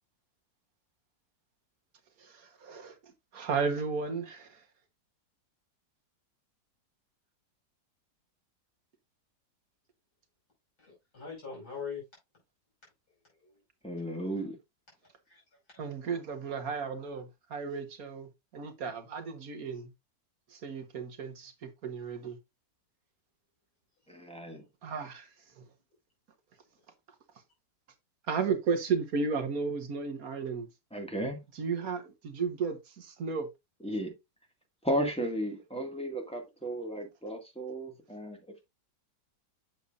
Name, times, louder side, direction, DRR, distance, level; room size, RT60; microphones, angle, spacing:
voice 1, 2.2-4.6 15.8-19.9 20.5-22.4 24.8-25.6 28.3-30.7 31.5-33.5, right 5 dB, 60° right, 1.5 m, -34 dB
voice 2, 10.8-12.0 13.4-13.6 15.0-15.4 15.7-15.8, left 6 dB, 65° left, 5.9 m, -42 dB
voice 3, 13.8-14.5 24.1-24.6 30.9-31.4 33.8-34.1 34.8-38.6, right 1 dB, 5° left, 1.8 m, -34 dB
8.3 x 6.7 x 2.5 m
omnidirectional pair, 1.8 m